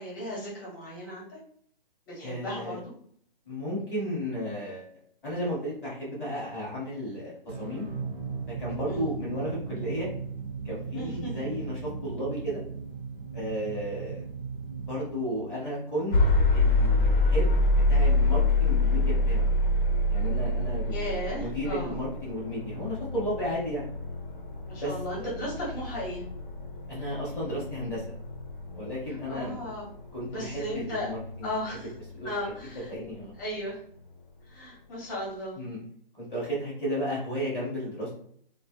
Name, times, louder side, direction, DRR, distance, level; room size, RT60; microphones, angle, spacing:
voice 1, 0.0-1.4 2.1-2.8 8.9-9.1 10.9-11.4 20.9-22.0 24.7-26.2 29.3-29.8 30.3-31.1 31.4-31.9 32.2-32.9 33.4-33.8 34.5-35.6, equal, 20° left, -5 dB, 0.9 m, -35 dB
voice 2, 2.2-2.8 3.4-4.9 5.2-7.9 8.6-10.1 10.6-12.6 13.3-14.2 14.8-16.2 16.5-17.6 17.9-19.5 20.1-23.8 24.7-25.3 26.9-28.0 28.7-29.7 30.1-31.9 32.1-32.6 32.9-33.3 35.6-35.8 36.2-38.1, equal, 5° left, -22 dB, 0.4 m, -33 dB
sound 1, 7.5-16.2, right 5 dB, 50° right, 0.8 m, -37 dB
sound 2, 16.1-32.1, left 2 dB, 60° left, 0.6 m, -27 dB
2.1 x 2.0 x 3.3 m, 0.62 s
hypercardioid pair, 155°, 29 cm